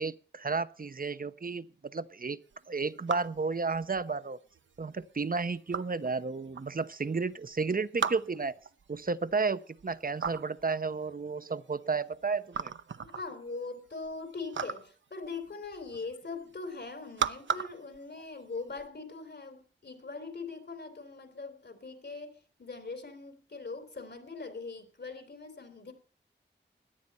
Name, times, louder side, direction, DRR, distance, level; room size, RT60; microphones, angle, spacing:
voice 1, 0.0-4.4 4.8-8.5 8.9-12.7, right 4 dB, 50° right, 14 dB, 0.9 m, -32 dB
sound 1, 2.5-18.9, right 6 dB, 75° right, 0.7 m, -39 dB
voice 2, 13.0-25.9, left 4 dB, 60° left, 8 dB, 3.5 m, -41 dB
17.5 x 11.5 x 4.3 m, 0.39 s
cardioid pair, 50°, 20 cm